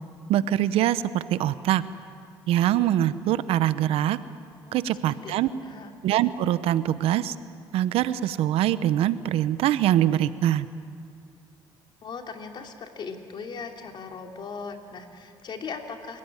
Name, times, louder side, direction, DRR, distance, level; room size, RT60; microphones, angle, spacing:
voice 1, 0.3-1.8 2.5-4.2 4.7-5.5 6.0-7.3 7.7-10.7, right 12 dB, 80° right, 15 dB, 0.9 m, -23 dB
voice 2, 12.0-16.2, left 5 dB, 50° left, 4 dB, 2.8 m, -38 dB
28.5 x 16.5 x 9.7 m, 2.3 s
cardioid pair, 95°, 10 cm